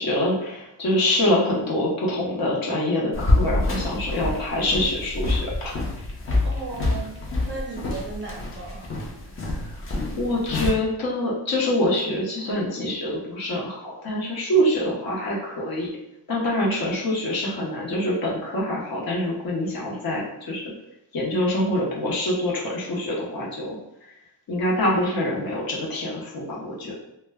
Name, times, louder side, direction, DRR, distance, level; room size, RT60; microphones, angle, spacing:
voice 1, 0.0-5.8 9.4-9.6 10.2-15.9 16.3-20.7 21.1-23.8 24.5-27.0, left 1 dB, 55° left, -3 dB, 0.9 m, -25 dB
sound 1, 3.1-10.7, left 2 dB, 30° left, 0.6 m, -26 dB
voice 2, 4.1-4.5 6.4-7.2 7.4-8.9, right 3 dB, 25° right, -2 dB, 0.6 m, -36 dB
2.2 x 2.1 x 3.4 m, 0.86 s
cardioid pair, 115°, 43 cm